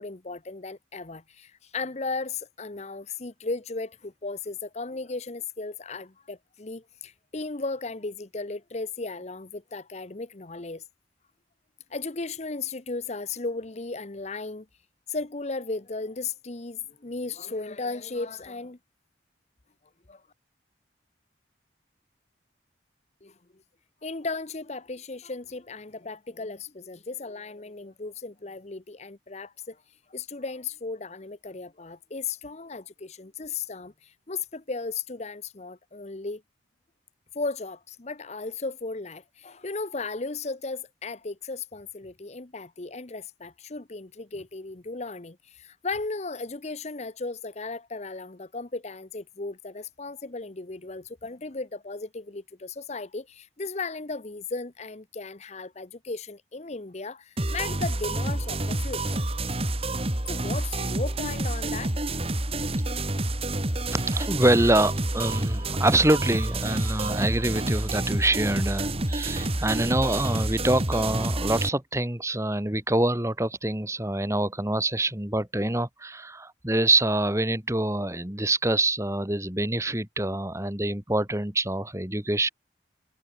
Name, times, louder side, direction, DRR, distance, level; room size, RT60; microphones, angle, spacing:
voice 1, 0.0-10.8 11.9-14.7 15.1-18.8 20.1-20.2 23.2-23.3 24.0-29.8 30.1-36.4 37.3-59.2 60.3-62.0, left 3 dB, 40° left, 0.9 m, -35 dB
sound 1, 57.4-71.7, right 1 dB, 35° right, 2.8 m, -28 dB
voice 2, 63.9-82.5, right 1 dB, 15° right, 2.6 m, -25 dB
head